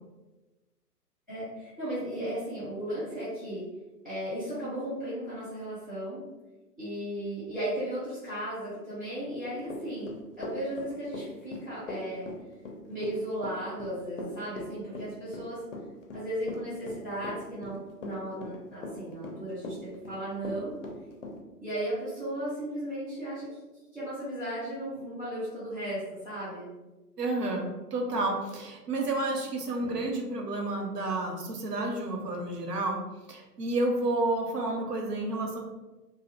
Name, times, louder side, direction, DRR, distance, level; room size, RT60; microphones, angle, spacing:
voice 1, 1.3-3.6 4.0-6.2 6.8-12.3 12.9-15.6 16.1-20.8 21.6-23.6 23.9-26.7 29.8-29.9, right 1 dB, ahead, -13 dB, 0.5 m, -35 dB
Run / Walk footsteps, 9.7-21.4, left 2 dB, 50° left, 0.5 m, -40 dB
voice 2, 27.2-33.0 33.3-35.6, right 2 dB, 70° right, 1 dB, 0.7 m, -30 dB
2.4 x 2.0 x 2.7 m, 1.1 s
figure-of-eight pair, 130°, 49 cm